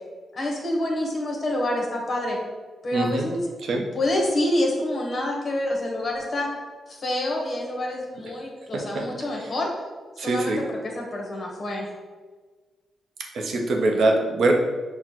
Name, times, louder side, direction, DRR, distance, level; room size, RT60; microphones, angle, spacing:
voice 1, 0.3-2.4 2.8-3.4 3.7-6.5 6.9-9.7 10.2-11.9, left 1 dB, 35° left, -1 dB, 0.9 m, -27 dB
voice 2, 2.9-3.3 3.6-3.9 8.6-9.1 9.4-9.5 10.2-10.6 13.3-14.5, right 2 dB, 70° right, 1 dB, 0.6 m, -23 dB
6.0 x 2.1 x 2.9 m, 1.4 s
cardioid pair, 120°, 0 cm